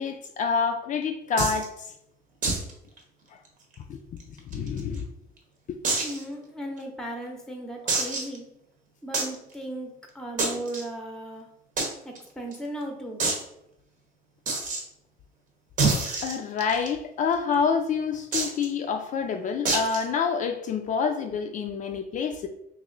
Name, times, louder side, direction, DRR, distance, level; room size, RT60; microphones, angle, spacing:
voice 1, 0.0-1.9 3.8-4.0 4.5-5.1 5.7-5.8 16.2-22.5, left 5 dB, 50° left, 0.4 m, -27 dB
sound 1, 1.4-1.7 2.4-2.7 3.0-3.1 3.5-3.6 4.2-5.0 5.8-6.2 6.8-6.9 7.9-8.4 9.1-9.4 10.4-10.8 11.8-11.9 12.2-12.3 12.5-12.6 13.2-13.4 14.5-14.8 15.8-16.9 18.3-18.7 19.7-20.0, right 3 dB, 50° right, 0.9 m, -26 dB
voice 2, 6.0-8.5 9.0-11.5 12.0-13.2, right 1 dB, 5° left, 0.7 m, -36 dB
3.0 x 2.6 x 3.8 m
cardioid pair, 110°, 17 cm